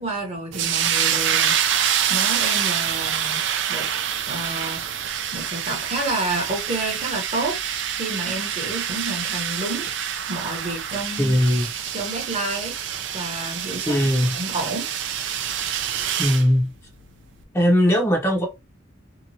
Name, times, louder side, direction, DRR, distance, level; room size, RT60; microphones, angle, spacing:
voice 1, 0.0-1.6 2.1-3.4 3.7-3.9 4.3-4.8 5.3-9.9 10.3-11.4 11.9-12.8 13.1-14.1 14.3-14.8, right 2 dB, 35° right, 0.9 m, -29 dB
sound 1, 0.5-16.5, right 9 dB, 65° right, 0.4 m, -26 dB
voice 2, 11.2-11.6 13.9-14.3 16.2-16.7 17.5-18.4, equal, 15° left, 0.7 m, -19 dB
2.8 x 2.4 x 2.7 m
head